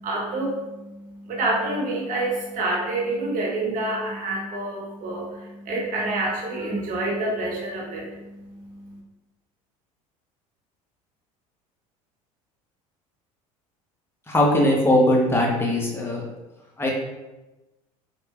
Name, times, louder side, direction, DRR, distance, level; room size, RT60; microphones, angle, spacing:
voice 1, 0.0-9.0, right 2 dB, 50° right, -3 dB, 0.9 m, -28 dB
voice 2, 14.3-16.2 16.8-16.9, left 1 dB, 15° left, -2 dB, 0.7 m, -20 dB
2.9 x 2.0 x 2.3 m, 1.0 s
hypercardioid pair, 75°, 18 cm